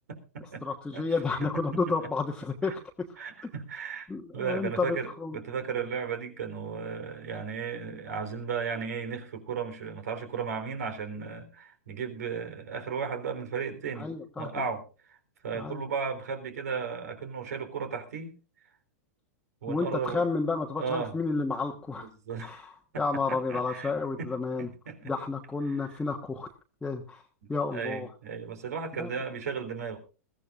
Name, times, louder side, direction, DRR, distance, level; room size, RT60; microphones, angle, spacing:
voice 1, 0.1-0.6 0.9-1.1 1.4-1.8 2.6-2.8 3.2-4.1 4.3-14.1 14.4-14.8 15.1-15.2 15.4-18.3 19.6-20.3 20.8-21.1 22.0-22.5 22.9-23.9 24.2-24.3 24.6-25.1 27.7-30.0, right 6 dB, 75° right, 7 dB, 3.8 m, -35 dB
voice 2, 0.6-3.1 4.1-5.4 13.9-14.5 15.5-15.8 19.7-22.1 22.4-24.7 25.0-26.5 26.8-27.2 27.5-28.1 29.0-29.1, left 4 dB, 10° left, 0 dB, 1.3 m, -31 dB
21.5 x 15.0 x 2.5 m, 0.33 s
hypercardioid pair, 125°, 9 cm